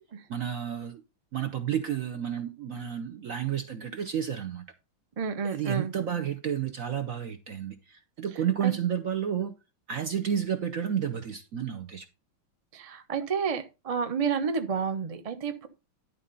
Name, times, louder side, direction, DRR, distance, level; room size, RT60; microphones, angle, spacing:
voice 1, 0.3-1.0 1.3-4.6 5.4-9.5 9.9-12.0, right 9 dB, 60° right, 0.9 m, -31 dB
voice 2, 5.2-5.9 8.6-8.7 12.7-15.7, right 6 dB, 45° right, 0.4 m, -30 dB
11.0 x 4.2 x 5.2 m
omnidirectional pair, 2.2 m